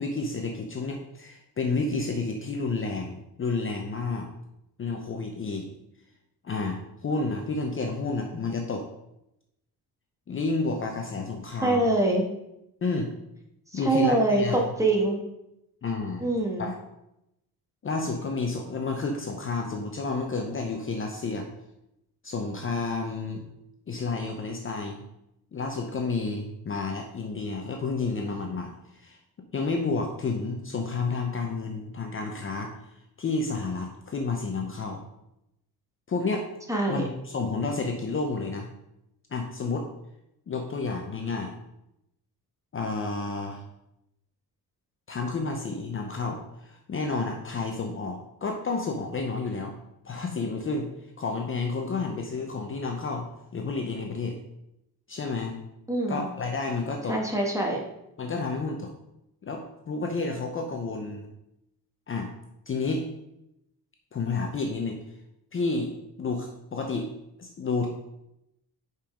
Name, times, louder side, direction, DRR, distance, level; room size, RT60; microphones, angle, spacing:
voice 1, 0.0-4.3 4.8-5.7 6.4-8.9 10.3-11.8 12.8-13.1 13.7-14.6 15.8-16.3 16.6-16.8 17.8-21.5 22.2-23.4 23.9-25.0 25.5-29.2 29.5-35.0 36.1-36.5 36.9-38.7 39.3-39.9 40.5-41.5 42.7-43.6 45.1-49.7 50.0-50.9 51.2-53.3 53.5-54.4 55.1-55.6 56.1-57.2 58.2-58.9 59.4-61.3 62.1-62.3 62.7-63.0 64.1-65.0 65.5-65.9 66.2-67.1 67.4-67.9, left 3 dB, 35° left, 2 dB, 0.7 m, -30 dB
voice 2, 11.6-12.2 13.7-15.2 16.2-16.7 36.7-37.0 55.9-56.3 57.1-57.8, right 2 dB, 10° right, 0 dB, 1.3 m, -24 dB
5.4 x 5.3 x 4.9 m, 0.86 s
cardioid pair, 150°, 39 cm